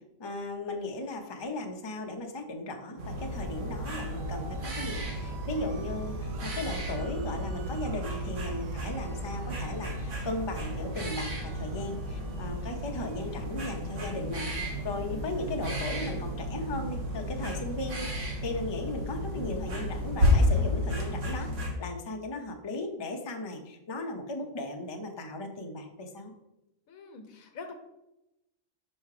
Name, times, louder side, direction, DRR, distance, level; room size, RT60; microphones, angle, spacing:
voice 1, 0.2-14.5 14.8-21.5 21.8-26.3, left 2 dB, 30° left, 3 dB, 0.5 m, -36 dB
sound 1, 3.0-21.7, left 1 dB, 60° right, 1.6 m, -32 dB
sound 2, 3.1-20.5, right 2 dB, 80° right, 1.0 m, -42 dB
voice 2, 26.9-27.7, left 4 dB, 85° left, 6 dB, 1.3 m, -45 dB
5.5 x 4.6 x 4.8 m, 0.91 s
omnidirectional pair, 1.4 m